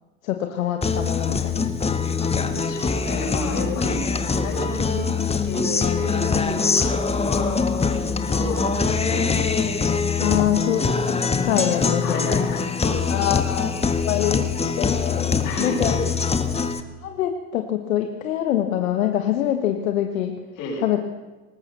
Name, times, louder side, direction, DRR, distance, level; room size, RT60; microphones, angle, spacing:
voice 1, 0.2-1.7 10.2-12.5 13.1-13.7 14.0-15.9 17.0-20.3 20.8-21.0, left 11 dB, 75° left, 6 dB, 1.6 m, -25 dB
Guitar, 0.8-16.8, left 5 dB, 15° left, 1.5 m, -23 dB
voice 2, 2.2-4.0 4.3-5.1 5.4-9.3 12.0-13.2 15.4-16.0 20.6-20.8, left 3 dB, 50° left, -1 dB, 7.8 m, -32 dB
20.5 x 18.5 x 7.0 m, 1.2 s
hypercardioid pair, 85°, 41 cm